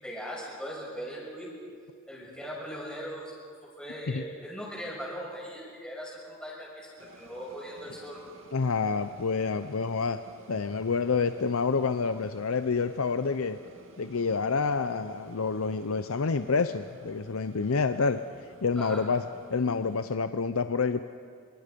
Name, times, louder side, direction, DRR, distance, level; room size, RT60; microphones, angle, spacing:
voice 1, 0.0-1.5 2.1-3.4 3.8-8.2 18.8-19.0, equal, 5° left, -4 dB, 6.3 m, -39 dB
sound 1, 7.0-20.1, right 2 dB, 65° right, 2.2 m, -54 dB
voice 2, 8.5-10.2 10.5-13.6 14.0-18.2 18.6-19.2 19.5-21.0, left 4 dB, 85° left, 10 dB, 0.6 m, -28 dB
25.0 x 25.0 x 5.3 m, 2.1 s
head